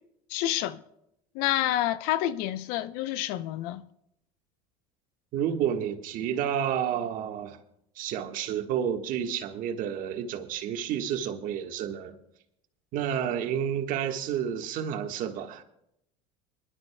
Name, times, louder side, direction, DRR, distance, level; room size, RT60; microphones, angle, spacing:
voice 1, 0.3-0.8 1.3-3.8, left 13 dB, 70° left, 0.7 m, -28 dB
voice 2, 5.3-7.6 8.0-12.2 12.9-15.6, right 9 dB, 60° right, 1.5 m, -30 dB
25.0 x 12.0 x 2.3 m
supercardioid pair, 95°, 16 cm